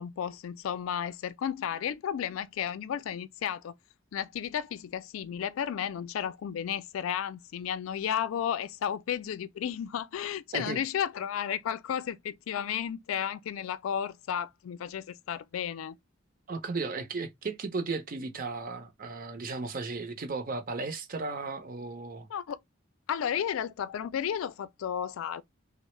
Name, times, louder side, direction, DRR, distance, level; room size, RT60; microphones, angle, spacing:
voice 1, 0.0-3.7 4.1-16.0 22.3-22.6 23.1-25.4, left 9 dB, 85° left, 0.3 m, -33 dB
voice 2, 16.5-22.3, right 3 dB, 45° right, 0.6 m, -35 dB
3.4 x 2.0 x 3.0 m
head